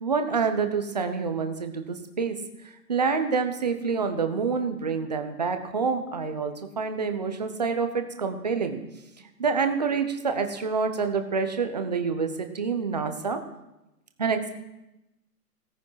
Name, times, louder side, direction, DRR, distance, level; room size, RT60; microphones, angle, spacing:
voice 1, 0.0-2.4 2.9-8.8 9.4-13.4 14.2-14.5, right 5 dB, 25° right, 7 dB, 0.9 m, -27 dB
17.0 x 9.7 x 5.7 m, 0.94 s
hypercardioid pair, 170°, 49 cm